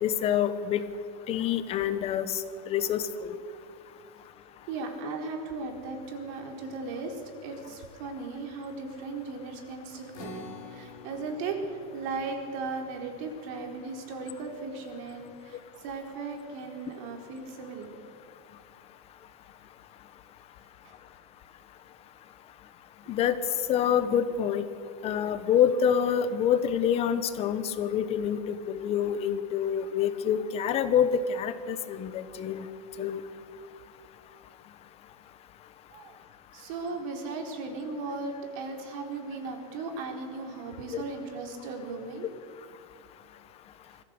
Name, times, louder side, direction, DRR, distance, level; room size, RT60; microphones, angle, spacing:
voice 1, 0.0-0.8 1.3-3.3 23.1-23.4 23.7-24.6 25.0-32.7 33.0-33.2 40.9-41.0, left 8 dB, 30° left, 12 dB, 1.4 m, -27 dB
voice 2, 4.7-18.0 20.8-21.0 23.0-23.1 35.9-36.2 36.5-42.3 43.9-44.0, right 3 dB, 55° right, 3 dB, 4.4 m, -37 dB
sound 1, 10.1-16.8, left 5 dB, 65° left, 4.0 m, -51 dB
22.0 x 15.0 x 8.2 m, 2.4 s
supercardioid pair, 140°, 19 cm